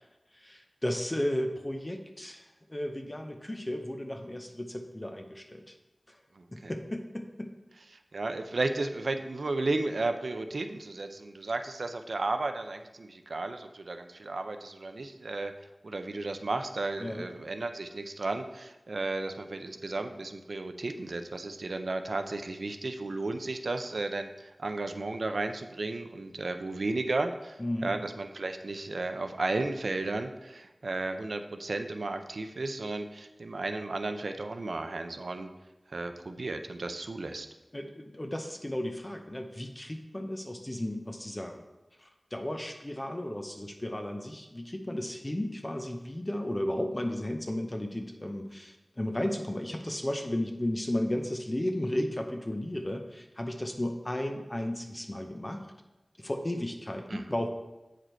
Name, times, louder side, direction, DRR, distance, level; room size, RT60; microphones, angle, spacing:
voice 1, 0.3-5.7 6.1-6.2 6.5-7.5 17.0-17.3 27.6-27.9 37.7-41.6 42.0-55.7 56.2-57.5, left 1 dB, 30° left, 3 dB, 0.7 m, -34 dB
voice 2, 6.4-6.7 8.1-15.5 15.8-35.5 35.9-37.5 57.1-57.2, right 2 dB, 90° right, 7 dB, 0.5 m, -34 dB
7.9 x 5.0 x 4.4 m, 1.0 s
wide cardioid pair, 65°, 0 cm